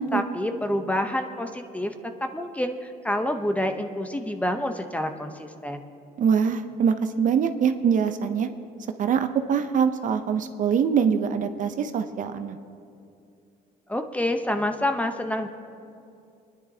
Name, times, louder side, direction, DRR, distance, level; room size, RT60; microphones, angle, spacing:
voice 1, 0.0-1.9 2.3-5.8 13.9-15.5, left 1 dB, 10° left, 6 dB, 0.8 m, -28 dB
voice 2, 6.2-8.5 9.0-12.6, right 7 dB, 50° right, 9 dB, 0.6 m, -23 dB
26.5 x 10.5 x 2.8 m, 2.5 s
cardioid pair, 110°, 17 cm